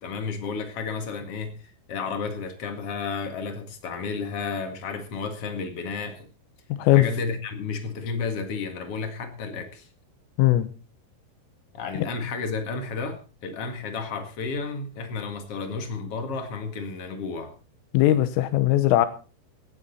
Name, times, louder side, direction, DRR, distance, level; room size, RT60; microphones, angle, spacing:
voice 1, 0.0-6.3 6.9-9.9 11.7-17.5, left 4 dB, 60° left, 7 dB, 1.5 m, -32 dB
voice 2, 6.7-7.1 10.4-10.7 17.9-19.1, left 14 dB, 85° left, 12 dB, 3.6 m, -19 dB
16.5 x 12.5 x 4.2 m, 0.35 s
omnidirectional pair, 5.8 m